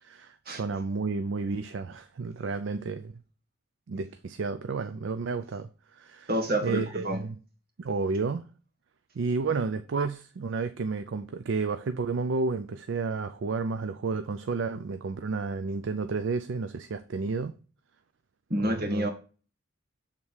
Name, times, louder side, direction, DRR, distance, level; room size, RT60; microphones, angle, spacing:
voice 1, 0.0-3.1 3.9-6.3 6.6-7.3 7.8-8.4 9.2-17.5 18.6-19.1, right 4 dB, 65° right, 0.4 m, -31 dB
voice 2, 6.3-7.2 18.5-19.1, right 1 dB, 50° right, 1.8 m, -28 dB
7.2 x 3.7 x 6.2 m
head